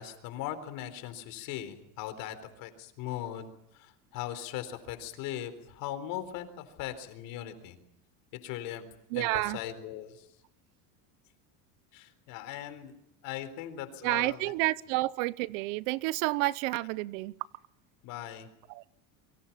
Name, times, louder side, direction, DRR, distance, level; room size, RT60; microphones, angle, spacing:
voice 1, 0.0-3.5 3.7-7.8 8.4-8.9 9.1-10.3 11.9-12.9 13.2-14.5 18.0-18.5, left 11 dB, 55° left, 4.0 m, -39 dB
voice 2, 9.1-9.6 14.0-17.3 18.7-18.8, right 20 dB, 70° right, 0.9 m, -30 dB
27.5 x 24.0 x 5.8 m
cardioid pair, 160°, 39 cm